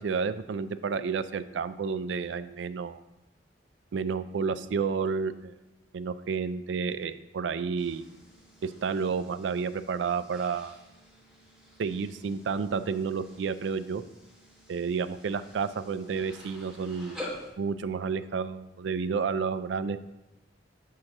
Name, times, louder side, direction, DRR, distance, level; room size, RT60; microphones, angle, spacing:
voice 1, 0.0-3.0 3.9-5.6 5.9-8.1 8.6-10.8 11.8-14.0 14.7-17.2 17.6-20.0, right 5 dB, 70° right, 13 dB, 0.4 m, -31 dB
sound 1, 7.8-17.5, left 1 dB, 5° right, 1.9 m, -48 dB
6.4 x 3.7 x 6.0 m, 0.94 s
head